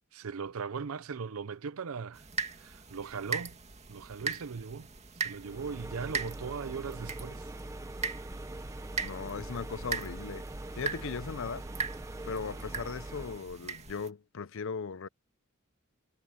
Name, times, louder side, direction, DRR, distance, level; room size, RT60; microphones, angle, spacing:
voice 1, 0.1-2.2 2.6-3.6 3.9-4.9 5.2-7.4, right 5 dB, 85° right, 0.6 m, -38 dB
sound 1, 2.1-14.1, right 5 dB, 30° right, 2.2 m, -40 dB
sound 2, 5.4-13.5, right 2 dB, 15° right, 0.5 m, -43 dB
voice 2, 9.0-10.5 10.7-11.7 12.3-15.1, left 5 dB, 65° left, 0.6 m, -38 dB
head